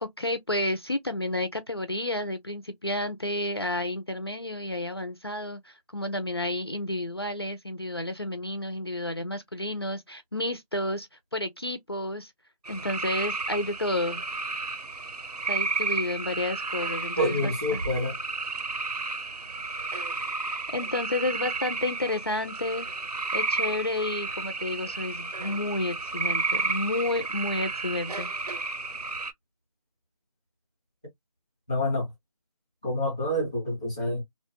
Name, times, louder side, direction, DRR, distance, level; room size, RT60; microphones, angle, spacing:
voice 1, 0.0-12.3 12.7-14.2 15.5-17.8 20.0-20.1 20.7-22.9 23.3-28.3, left 1 dB, 40° left, 0.4 m, -31 dB
sound 1, 12.6-29.3, right 3 dB, 85° right, 0.9 m, -32 dB
voice 2, 17.2-18.2 31.7-32.1 32.8-34.2, left 1 dB, 10° right, 0.6 m, -27 dB
2.8 x 2.1 x 2.8 m
figure-of-eight pair, 175°, 20 cm